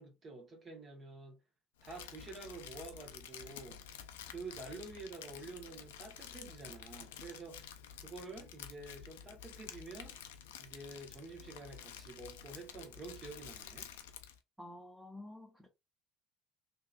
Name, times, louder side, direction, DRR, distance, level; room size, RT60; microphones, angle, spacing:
voice 1, 0.0-1.4 1.8-3.8 4.3-7.7 8.0-10.2 10.6-13.9, right 3 dB, 35° right, 1.1 m, -49 dB
Crumpling crinkling, 1.8-14.4, left 9 dB, 85° left, 0.4 m, -50 dB
voice 2, 14.6-15.7, left 1 dB, 10° right, 0.7 m, -50 dB
3.4 x 2.6 x 2.3 m
hypercardioid pair, 75°, 0 cm